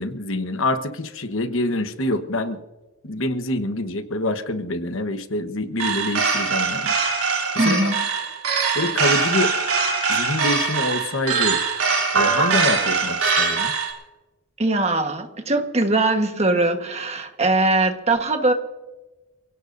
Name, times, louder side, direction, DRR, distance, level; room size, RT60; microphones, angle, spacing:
voice 1, 0.0-2.6 3.0-6.9 7.6-7.9 8.7-9.6 10.1-11.6 12.1-13.7, left 1 dB, 65° left, 9 dB, 1.2 m, -26 dB
sound 1, 5.8-13.9, right 5 dB, 75° right, 3.3 m, -22 dB
voice 2, 7.6-8.0 14.6-18.5, right 2 dB, 30° right, 5 dB, 1.3 m, -21 dB
28.5 x 17.0 x 2.7 m, 1.2 s
head